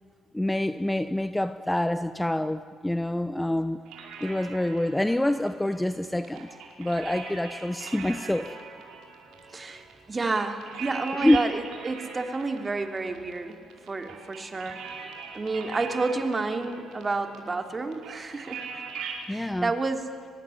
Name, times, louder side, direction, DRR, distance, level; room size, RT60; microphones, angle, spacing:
voice 1, 0.3-3.8 4.2-6.5 6.8-8.5 11.2-11.4 19.3-19.7, left 1 dB, 10° left, 11 dB, 0.9 m, -26 dB
sound 1, 3.9-19.3, right 6 dB, 85° right, 5.0 m, -42 dB
voice 2, 9.5-13.6 13.9-15.1 15.3-18.6 19.3-20.0, right 3 dB, 30° right, 6 dB, 3.1 m, -30 dB
24.5 x 20.5 x 9.9 m, 2.3 s
cardioid pair, 90°, 0 cm